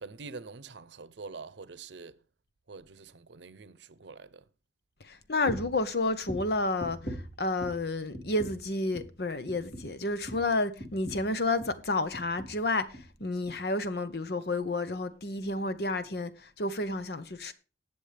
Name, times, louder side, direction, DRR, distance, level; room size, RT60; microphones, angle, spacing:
voice 1, 0.0-2.2 2.7-4.4, right 4 dB, 85° right, 0.7 m, -45 dB
voice 2, 5.1-12.8 13.2-16.3 16.6-17.5, left 2 dB, 65° left, 1.0 m, -30 dB
sound 1, 5.4-5.8 6.2-7.9 8.1-8.7 8.9-9.2 9.5-11.8 12.1-12.6 12.9-13.1 13.5-13.6, equal, 45° left, 2.6 m, -41 dB
19.0 x 7.1 x 3.4 m
head